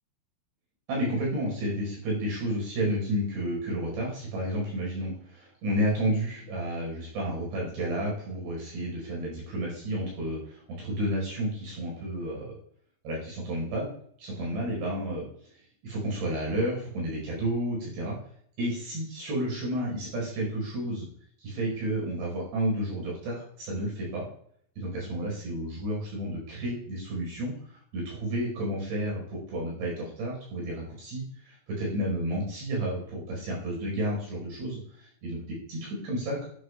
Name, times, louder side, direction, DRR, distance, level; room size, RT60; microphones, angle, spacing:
voice 1, 0.9-12.6 13.0-13.9 14.2-15.3 15.8-18.2 18.6-21.1 21.4-24.2 24.8-27.5 27.9-36.5, right 1 dB, 70° right, -3 dB, 7.1 m, -31 dB
13.0 x 10.0 x 2.4 m, 0.64 s
omnidirectional pair, 5.2 m